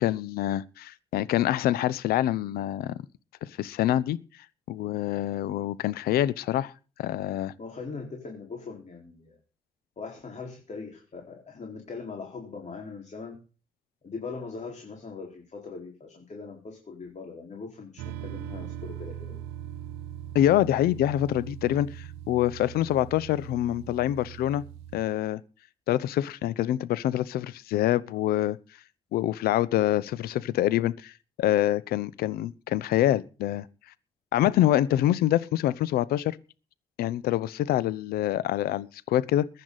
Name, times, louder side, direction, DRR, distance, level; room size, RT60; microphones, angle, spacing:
voice 1, 0.0-3.0 3.4-4.2 4.7-6.7 7.0-7.5 20.3-24.6 24.9-25.4 25.9-28.6 29.1-31.1 31.4-33.7 34.3-36.4 37.0-39.5, left 13 dB, 75° left, 0.8 m, -26 dB
voice 2, 7.6-9.4 10.0-13.4 14.0-19.4, left 4 dB, 50° left, 4.6 m, -40 dB
sound 1, 18.0-25.0, right 11 dB, 85° right, 0.8 m, -40 dB
21.0 x 10.5 x 4.1 m
hypercardioid pair, 40°, 16 cm